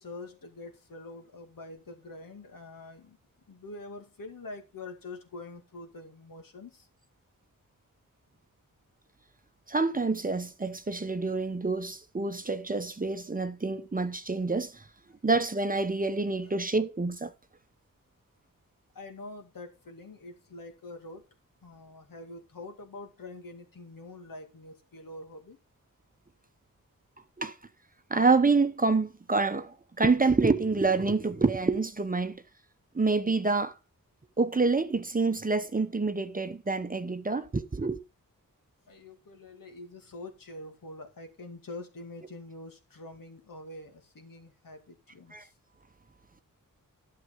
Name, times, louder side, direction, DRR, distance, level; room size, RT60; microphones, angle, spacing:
voice 1, 0.0-3.2 3.5-6.9 16.4-16.5 18.9-21.2 21.6-25.6 38.9-45.5, left 2 dB, 75° left, 2.3 m, -45 dB
voice 2, 9.7-14.9 15.2-17.3 27.4-27.6 28.1-32.4 32.9-33.7 34.4-38.0 45.3-45.4, right 3 dB, 25° right, 0.8 m, -27 dB
11.5 x 6.7 x 5.1 m
wide cardioid pair, 110°, 34 cm